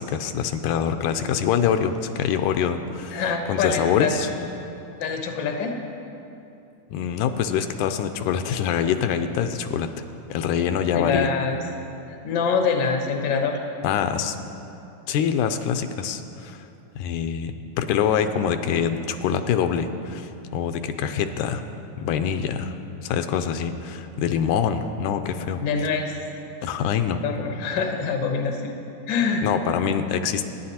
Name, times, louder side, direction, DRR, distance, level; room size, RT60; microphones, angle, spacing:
voice 1, 0.0-4.3 6.9-10.1 10.3-11.3 13.8-14.4 15.1-16.7 17.0-21.6 22.0-22.8 23.0-25.6 26.6-27.2 29.4-30.4, left 8 dB, 80° left, 8 dB, 2.0 m, -25 dB
voice 2, 3.1-4.2 5.0-5.7 10.9-11.6 12.1-13.6 25.6-26.1 27.2-28.7 29.1-29.5, left 5 dB, 65° left, 2 dB, 1.1 m, -25 dB
24.5 x 10.0 x 2.9 m, 2.8 s
omnidirectional pair, 3.7 m